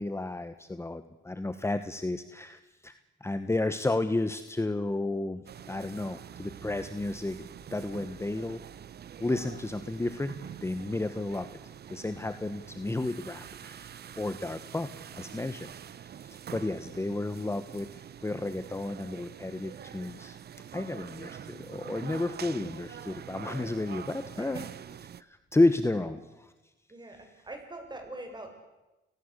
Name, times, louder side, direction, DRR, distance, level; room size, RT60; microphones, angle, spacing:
voice 1, 0.0-7.5 7.7-8.6 9.2-11.5 11.9-15.7 16.0-20.4 20.7-24.6 25.2-26.2, left 2 dB, 15° left, 11 dB, 1.4 m, -32 dB
sound 1, 5.5-25.2, right 9 dB, 55° right, 1.0 m, -45 dB
voice 2, 24.2-24.7 25.5-25.6 26.0-26.2 26.9-28.5, right 2 dB, 20° right, 5 dB, 7.8 m, -44 dB
30.0 x 19.0 x 8.3 m, 1.0 s
cardioid pair, 90°, 20 cm